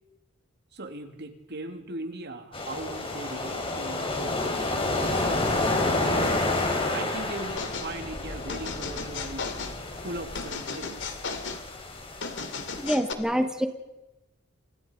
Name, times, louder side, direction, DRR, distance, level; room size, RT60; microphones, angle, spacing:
voice 1, 0.7-6.4 6.9-9.5 10.0-11.2, right 2 dB, 55° right, 6 dB, 2.8 m, -39 dB
sound 1, 2.5-12.9, left 2 dB, 30° left, 4.8 m, -30 dB
sound 2, 7.6-7.9 8.5-9.8 10.3-11.6 12.2-13.1, left 5 dB, 65° left, 2.7 m, -35 dB
voice 2, 12.8-13.7, equal, 5° right, 6 dB, 1.2 m, -26 dB
29.5 x 27.0 x 5.2 m, 1.0 s
head